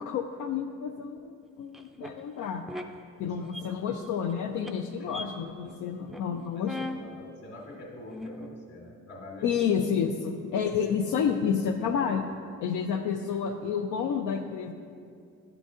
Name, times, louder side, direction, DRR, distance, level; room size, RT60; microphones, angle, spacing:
voice 1, 0.0-2.6 3.2-6.7 9.4-12.3 12.6-14.7, left 7 dB, 85° left, 3 dB, 0.5 m, -30 dB
sound 1, 1.7-2.1 2.7-2.8 3.3-3.6 4.0-4.3 4.6-4.7 5.1-5.3 5.6-5.7 6.0-6.4 6.6-7.0 7.6-7.7 8.1-8.5, left 2 dB, ahead, 0.4 m, -38 dB
voice 2, 3.2-3.8 5.0-5.1 6.5-9.6, left 1 dB, 45° left, -3 dB, 1.3 m, -46 dB
10.5 x 3.9 x 3.7 m, 2.2 s
cardioid pair, 90°, 30 cm